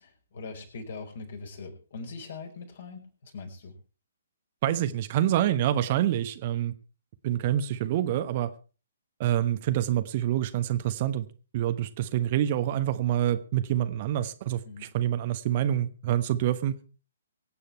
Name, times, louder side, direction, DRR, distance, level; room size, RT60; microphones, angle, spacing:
voice 1, 0.0-3.7 14.6-14.9, left 4 dB, 50° left, 5.3 m, -41 dB
voice 2, 4.6-6.7 7.2-8.5 9.2-11.3 11.5-16.8, right 12 dB, 35° right, 1.2 m, -26 dB
24.5 x 8.7 x 4.6 m
figure-of-eight pair, 125°, 0 cm